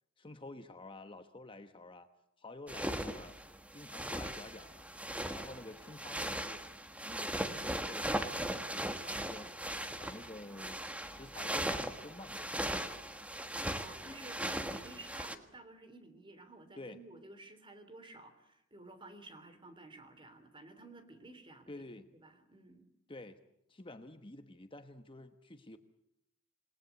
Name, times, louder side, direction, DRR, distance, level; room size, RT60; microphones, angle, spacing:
voice 1, 0.2-2.1 2.4-3.4 3.7-4.9 5.3-6.6 7.0-9.5 10.0-13.0 16.8-17.0 21.7-22.1 23.1-23.4 23.7-25.8, left 2 dB, 25° left, 8 dB, 1.1 m, -50 dB
sound 1, 2.7-15.4, right 1 dB, 5° right, 1.4 m, -39 dB
voice 2, 13.7-21.8 22.1-22.9, right 2 dB, 25° right, 9 dB, 3.2 m, -53 dB
28.0 x 19.5 x 8.3 m, 0.82 s
head